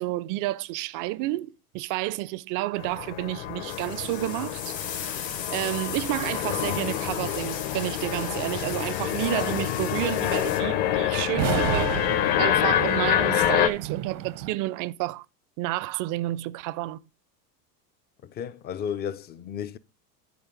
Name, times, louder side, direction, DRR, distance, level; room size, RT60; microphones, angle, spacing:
voice 1, 0.0-4.8 5.5-12.1 12.4-15.3 15.6-17.0, right 17 dB, 40° right, 0.4 m, -30 dB
sound 1, 2.8-13.7, left 12 dB, 50° left, 1.0 m, -27 dB
sound 2, 3.7-10.6, left 8 dB, 85° left, 1.6 m, -37 dB
sound 3, 11.3-14.5, right 11 dB, 80° right, 0.9 m, -31 dB
voice 2, 18.2-19.8, left 8 dB, 25° left, 0.4 m, -33 dB
10.0 x 4.6 x 5.2 m
hypercardioid pair, 90°, 49 cm